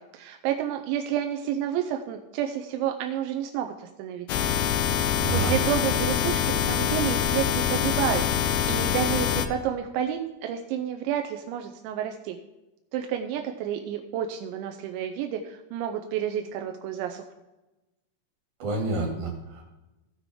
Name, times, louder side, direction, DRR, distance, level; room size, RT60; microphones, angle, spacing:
voice 1, 0.0-4.3 5.3-12.4 12.9-17.2, right 10 dB, 90° right, 4 dB, 3.0 m, -30 dB
sound 1, 4.3-9.5, left 9 dB, 85° left, 3.0 m, -25 dB
voice 2, 5.1-5.5 18.6-19.7, right 3 dB, 60° right, -1 dB, 4.2 m, -29 dB
16.0 x 6.0 x 3.6 m, 1.0 s
omnidirectional pair, 5.1 m